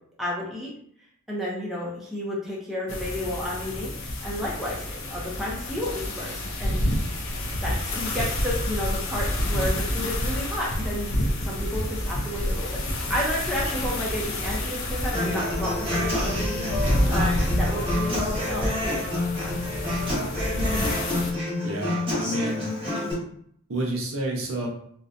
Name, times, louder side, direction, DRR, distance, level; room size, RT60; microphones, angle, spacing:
voice 1, 0.2-0.7 1.3-3.9 4.2-6.8 7.6-11.2 11.4-19.0, left 1 dB, ahead, -6 dB, 0.4 m, -32 dB
sound 1, 2.9-21.3, left 1 dB, 55° left, 0.4 m, -28 dB
Human voice / Acoustic guitar, 15.1-23.1, left 1 dB, 25° right, 0.9 m, -28 dB
voice 2, 20.5-20.9 21.6-22.7 23.7-24.7, right 1 dB, 60° right, -1 dB, 0.6 m, -29 dB
2.6 x 2.1 x 2.4 m, 0.66 s
head